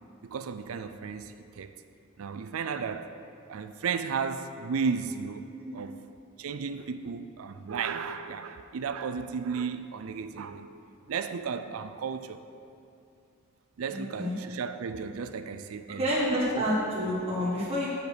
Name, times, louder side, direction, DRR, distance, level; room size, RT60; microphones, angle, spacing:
voice 1, 0.2-1.7 2.2-3.2 3.5-6.0 6.4-12.4 13.8-16.0 16.5-16.6, right 5 dB, 85° right, 0.4 m, -34 dB
voice 2, 13.9-14.3 15.9-18.0, equal, 30° right, 1.3 m, -29 dB
8.4 x 5.1 x 6.5 m
head